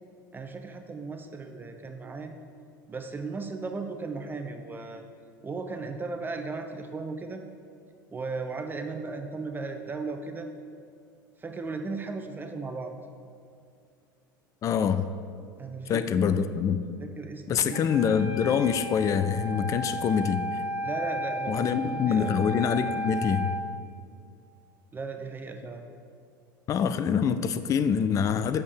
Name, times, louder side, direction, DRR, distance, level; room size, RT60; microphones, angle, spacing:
voice 1, 0.3-2.3 2.9-5.0 5.4-7.4 8.1-10.5 11.4-12.9 15.6-16.4 17.0-17.9 20.8-22.4 24.9-25.8, right 4 dB, 15° right, 5 dB, 0.7 m, -36 dB
voice 2, 14.6-15.0 15.9-16.8 17.5-20.6 21.5-23.5 26.7-28.6, left 7 dB, 30° left, 11 dB, 0.5 m, -25 dB
Wind instrument woodwind instrument, 17.7-23.7, equal, 85° right, 0.9 m, -34 dB
8.7 x 6.4 x 7.2 m, 2.3 s
figure-of-eight pair, 75°, 11 cm